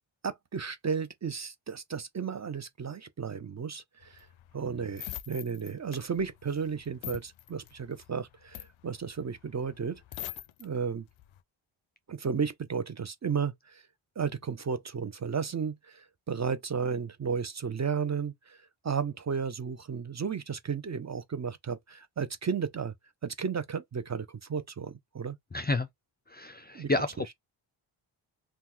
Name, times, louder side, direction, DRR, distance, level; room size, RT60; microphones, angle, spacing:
voice 1, 0.2-4.3 4.5-10.3 10.6-11.1 12.1-13.8 14.2-18.6 18.8-22.9 23.2-25.4 26.7-26.9, right 6 dB, 35° right, 0.5 m, -33 dB
sound 1, 4.0-10.7 11.1-11.4, left 13 dB, 70° left, 0.5 m, -44 dB
voice 2, 25.5-25.9 26.3-27.3, left 2 dB, 20° left, 0.4 m, -30 dB
2.9 x 2.1 x 3.6 m
wide cardioid pair, 85°, 50 cm